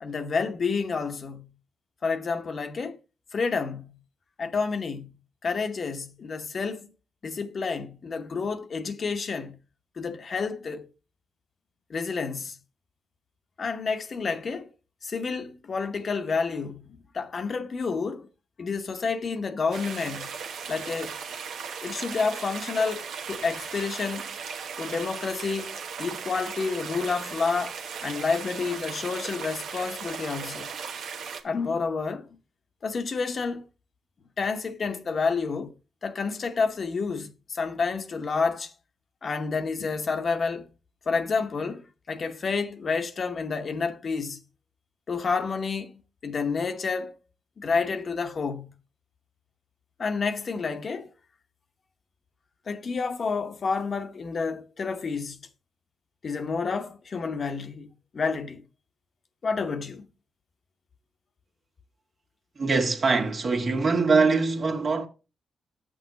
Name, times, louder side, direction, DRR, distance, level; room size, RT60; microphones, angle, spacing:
voice 1, 0.0-1.5 2.0-3.0 3.3-4.0 4.4-5.1 5.4-6.9 7.2-9.6 10.0-10.9 11.9-12.6 13.6-14.7 15.0-18.3 18.6-20.3 20.7-21.2 21.8-24.3 24.8-30.7 31.4-32.3 32.8-33.6 34.4-35.7 36.0-38.7 39.2-40.7 41.1-44.4 45.1-47.1 47.6-48.7 50.0-51.1 52.7-55.4 56.2-58.6 59.4-60.1, left 4 dB, 55° left, 0.9 m, -29 dB
sound 1, 19.7-31.4, right 6 dB, 80° right, 1.1 m, -37 dB
voice 2, 62.6-65.1, right 4 dB, 50° right, 1.6 m, -23 dB
7.6 x 6.3 x 3.9 m
cardioid pair, 65°, 0 cm